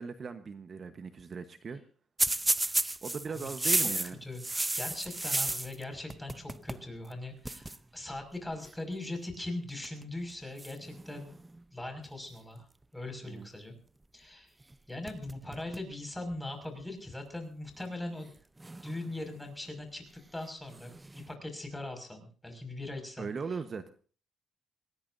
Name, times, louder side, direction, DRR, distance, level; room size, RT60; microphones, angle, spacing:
voice 1, 0.0-1.8 3.0-4.2 13.2-13.5 23.2-23.9, right 5 dB, 45° right, 9 dB, 1.1 m, -38 dB
sound 1, 2.2-5.8 6.1-6.9 7.1-7.2 7.4-7.8 8.6-8.9 9.7-10.0 10.6-11.6 14.6-14.7 15.1-15.9 16.3-16.4 17.3-17.4 18.6-19.5 20.7-21.3, right 2 dB, 15° right, 0.6 m, -33 dB
voice 2, 3.3-3.8 4.2-4.4 4.8-11.3 11.7-12.6 12.9-13.7 14.1-14.5 14.9-18.3 18.8-20.0 20.3-21.0 21.3-23.3, left 2 dB, 10° left, 5 dB, 5.9 m, -40 dB
22.5 x 19.0 x 2.7 m, 0.40 s
cardioid pair, 90°, 0 cm